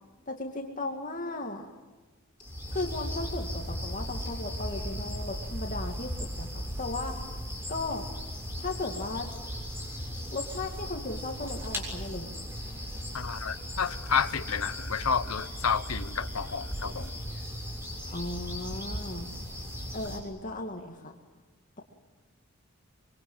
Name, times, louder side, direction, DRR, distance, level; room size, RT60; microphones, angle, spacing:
voice 1, 0.3-1.7 2.7-7.1 7.7-8.0 8.6-9.3 10.3-12.4 18.1-19.3 19.9-21.1, left 2 dB, 40° left, 1 dB, 2.4 m, -36 dB
sound 1, 2.4-20.2, equal, 10° right, 7.1 m, -37 dB
voice 2, 13.1-17.1, left 6 dB, 90° left, 11 dB, 1.0 m, -30 dB
25.0 x 24.0 x 9.1 m, 1.2 s
head